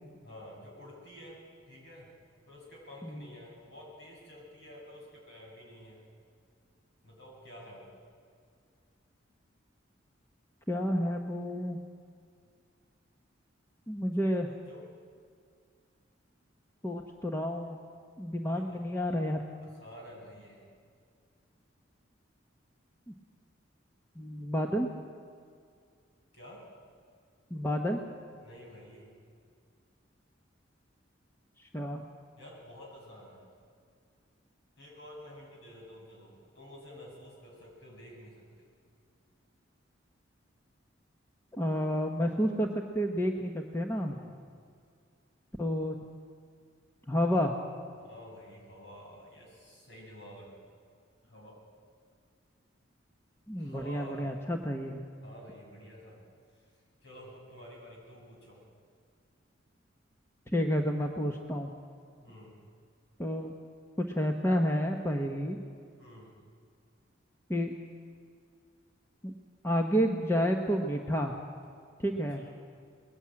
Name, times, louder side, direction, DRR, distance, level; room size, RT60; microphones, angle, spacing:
voice 1, 0.2-2.1 2.5-6.1 7.0-7.9 14.7-14.8 18.5-18.8 19.6-20.7 26.3-26.6 28.4-29.1 32.4-33.5 34.8-38.7 44.1-44.4 48.0-50.5 51.2-51.6 53.6-54.3 55.2-56.2 57.0-58.6 62.2-62.6 66.0-66.3 72.1-72.5, equal, 65° left, -2 dB, 7.6 m, -50 dB
voice 2, 10.7-11.8 13.9-14.5 16.8-17.8 18.2-19.4 23.1-23.2 24.1-24.9 27.5-28.0 31.6-32.0 41.5-42.7 42.9-44.2 45.6-46.0 47.1-47.5 53.5-55.0 60.5-61.7 63.2-63.5 64.0-65.6 67.5-67.7 69.2-69.3 69.6-71.3 72.0-72.4, equal, 15° left, 2 dB, 1.0 m, -30 dB
20.5 x 14.5 x 8.8 m, 2.2 s
head